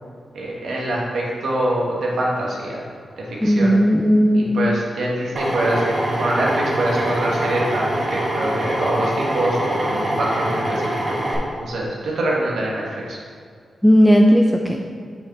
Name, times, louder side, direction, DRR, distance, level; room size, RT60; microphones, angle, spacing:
voice 1, 0.3-2.8 3.3-3.7 4.3-11.2 11.6-13.2, right 1 dB, 85° right, -4 dB, 1.5 m, -24 dB
voice 2, 3.4-4.7 13.8-14.9, equal, 5° left, 1 dB, 0.5 m, -15 dB
Drill, 5.4-11.4, right 1 dB, 35° right, 1.9 m, -24 dB
6.0 x 5.0 x 4.8 m, 2.1 s
cardioid pair, 75°, 0 cm